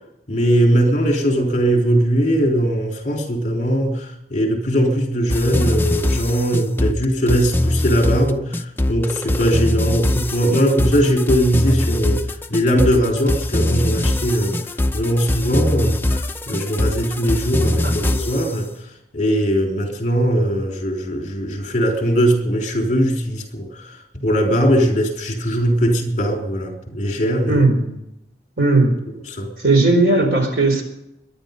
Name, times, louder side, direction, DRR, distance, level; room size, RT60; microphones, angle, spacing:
voice 1, 0.3-12.2 12.5-14.6 14.9-16.2 16.5-18.7 19.1-23.9 24.2-27.6 29.3-29.5, equal, 40° left, 1 dB, 3.7 m, -20 dB
sound 1, 5.3-18.5, left 1 dB, 10° left, 0.6 m, -22 dB
voice 2, 27.5-28.0 28.6-28.9 29.6-30.8, right 2 dB, 60° right, 4 dB, 4.6 m, -16 dB
23.0 x 10.5 x 5.4 m, 0.82 s
head